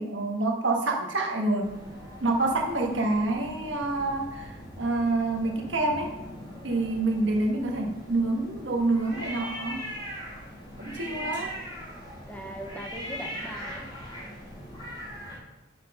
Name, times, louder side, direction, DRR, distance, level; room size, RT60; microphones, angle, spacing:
voice 1, 0.0-1.7 2.2-6.1 6.6-9.8 10.8-11.5, right 2 dB, 70° right, 1 dB, 1.4 m, -27 dB
sound 1, 1.6-15.4, equal, 25° left, 2.5 m, -41 dB
voice 2, 10.8-11.5 12.3-13.9, equal, 5° left, 3 dB, 0.7 m, -41 dB
6.4 x 5.7 x 5.4 m, 1.0 s
head